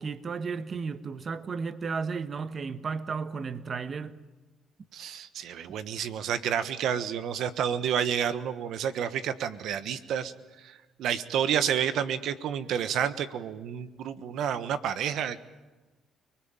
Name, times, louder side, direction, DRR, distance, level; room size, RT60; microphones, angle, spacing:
voice 1, 0.0-4.2, right 5 dB, 40° right, 1.3 m, -34 dB
voice 2, 4.9-15.4, right 8 dB, 75° right, 1.3 m, -30 dB
29.5 x 20.5 x 8.9 m
cardioid pair, 90°, 0 cm